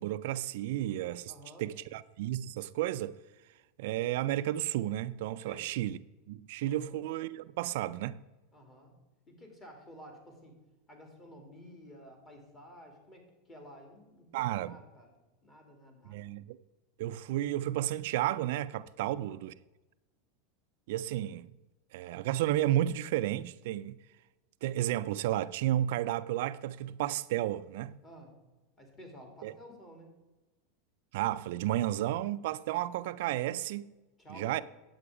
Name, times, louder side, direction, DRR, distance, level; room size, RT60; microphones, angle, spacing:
voice 1, 0.0-1.3 1.6-3.2 3.8-6.0 6.3-8.2 14.3-14.8 16.1-16.6 17.0-19.5 20.9-21.5 21.9-24.0 24.6-27.9 29.4-29.5 31.1-33.9 34.3-34.6, right 13 dB, 70° right, 0.4 m, -32 dB
voice 2, 1.3-1.7 5.4-5.7 6.6-7.0 8.5-8.9 9.3-10.5 10.9-13.2 13.5-15.1 15.4-16.2 19.0-19.4 28.0-28.4 28.8-30.1 34.2-34.6, equal, 25° left, 2.8 m, -52 dB
9.7 x 7.8 x 4.9 m
supercardioid pair, 140°, 0 cm